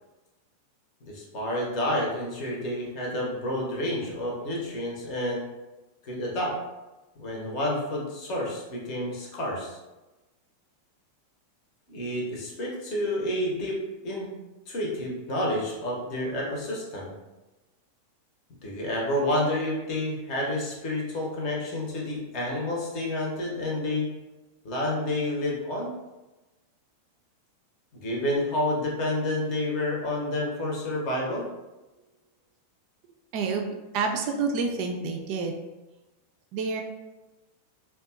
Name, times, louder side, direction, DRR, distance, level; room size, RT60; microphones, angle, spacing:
voice 1, 1.0-5.4 6.0-6.5 7.2-9.8 11.9-14.3 14.7-17.1 18.6-24.1 24.6-25.9 27.9-31.5, left 1 dB, 40° left, -2 dB, 0.7 m, -29 dB
voice 2, 33.3-33.7 33.9-35.6 36.5-36.8, right 4 dB, 45° right, 3 dB, 0.3 m, -28 dB
2.6 x 2.2 x 2.3 m, 1.1 s
figure-of-eight pair, 90°, 0 cm